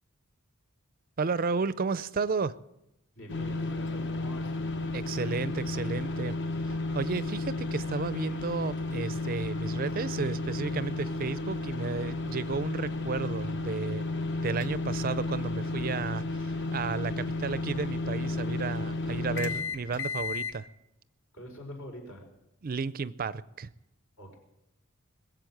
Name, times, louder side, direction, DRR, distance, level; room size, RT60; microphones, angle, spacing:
voice 1, 1.2-2.6 4.9-6.4 6.6-14.1 14.4-20.7 22.6-23.7, right 4 dB, 40° right, 17 dB, 0.4 m, -33 dB
voice 2, 3.1-4.8 21.3-22.2 24.2-24.3, equal, 70° left, 2 dB, 5.1 m, -44 dB
sound 1, 3.3-20.6, left 2 dB, 55° left, 1.1 m, -33 dB
21.0 x 7.7 x 7.9 m, 0.89 s
head